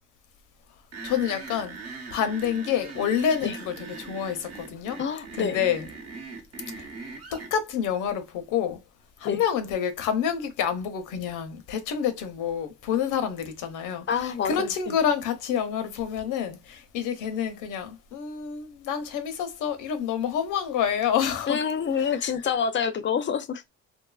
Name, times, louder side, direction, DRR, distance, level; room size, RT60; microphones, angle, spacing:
sound 1, 0.9-7.5, right 4 dB, 55° right, 0.9 m, -40 dB
voice 1, 1.0-5.9 6.8-6.9 7.3-8.8 9.2-21.6, left 8 dB, 90° left, 0.6 m, -28 dB
voice 2, 5.0-5.6 9.2-9.4 14.1-14.9 21.5-23.6, left 7 dB, 40° left, 0.4 m, -27 dB
2.6 x 2.3 x 2.3 m
cardioid pair, 90°, 30 cm